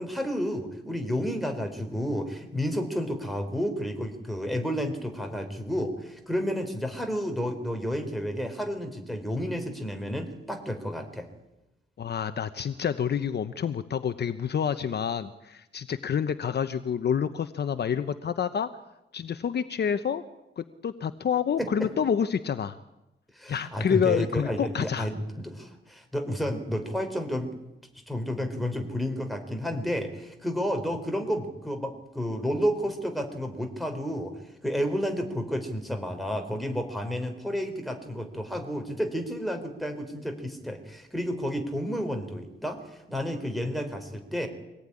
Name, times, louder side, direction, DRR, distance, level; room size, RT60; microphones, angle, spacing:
voice 1, 0.0-11.3 21.6-21.9 23.3-27.5 28.1-34.3 34.6-44.5, equal, ahead, 4 dB, 3.9 m, -31 dB
voice 2, 12.0-18.7 19.1-20.2 20.6-22.8 23.5-25.1, left 7 dB, 55° left, 11 dB, 1.0 m, -28 dB
25.0 x 18.5 x 9.8 m, 0.92 s
wide cardioid pair, 175°, 20 cm